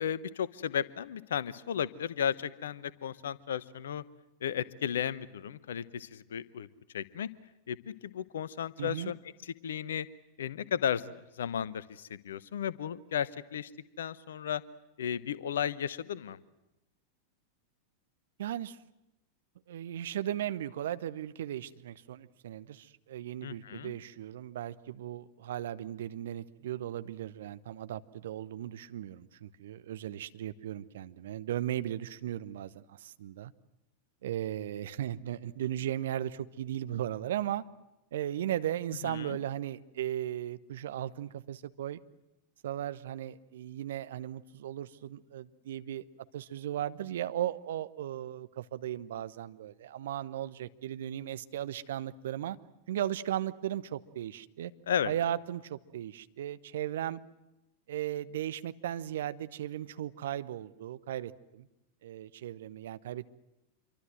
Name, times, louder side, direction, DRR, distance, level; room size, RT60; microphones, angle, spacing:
voice 1, 0.0-4.0 4.4-6.7 6.9-7.3 7.7-9.2 9.4-10.1 10.4-13.7 14.0-14.6 15.0-16.4 23.4-23.9 39.0-39.4 54.9-55.1, left 8 dB, 65° left, 19 dB, 1.0 m, -34 dB
voice 2, 8.8-9.1 18.4-18.8 19.7-33.5 34.2-37.6 38.1-42.0 42.6-46.0 46.3-52.6 52.9-54.7 55.0-57.2 57.9-61.7 62.0-63.2, right 11 dB, 60° right, 14 dB, 0.9 m, -36 dB
27.0 x 23.5 x 7.8 m, 0.95 s
figure-of-eight pair, 90°, 0 cm